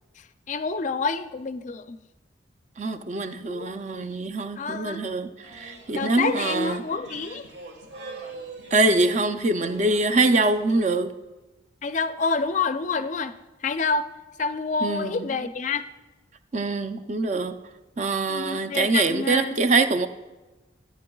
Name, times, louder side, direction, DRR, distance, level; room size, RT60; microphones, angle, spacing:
voice 1, 0.5-2.0 3.5-4.1 4.6-5.0 5.9-7.5 11.8-13.3 13.6-14.1 14.4-15.9 18.3-19.6, left 4 dB, 40° left, 11 dB, 0.4 m, -28 dB
voice 2, 2.8-6.8 8.7-11.1 14.8-15.4 16.5-17.5 18.0-20.1, right 3 dB, 35° right, 8 dB, 0.5 m, -24 dB
sound 1, 5.4-10.8, right 3 dB, 60° right, 1.5 m, -42 dB
13.5 x 9.6 x 2.3 m, 1.2 s
head